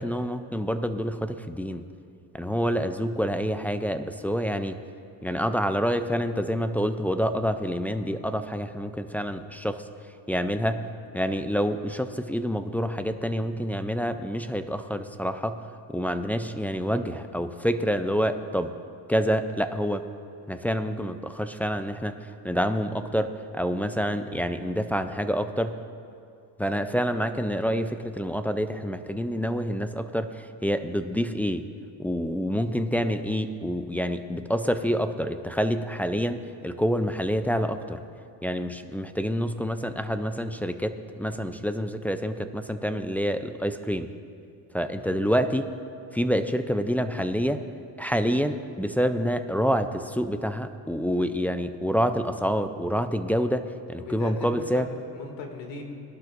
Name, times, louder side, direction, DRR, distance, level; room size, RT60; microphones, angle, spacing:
voice 1, 0.0-1.8 2.3-4.8 5.2-9.8 10.3-10.8 11.1-15.6 15.9-18.7 19.1-20.1 20.5-22.2 22.4-25.8 26.6-31.6 32.0-38.0 38.4-44.1 44.7-45.7 46.1-47.6 48.0-53.6 53.9-54.9, equal, 5° left, 8 dB, 0.3 m, -27 dB
voice 2, 54.0-55.8, left 3 dB, 80° left, 2 dB, 2.3 m, -39 dB
20.5 x 12.0 x 2.5 m, 2.5 s
cardioid pair, 110°, 44 cm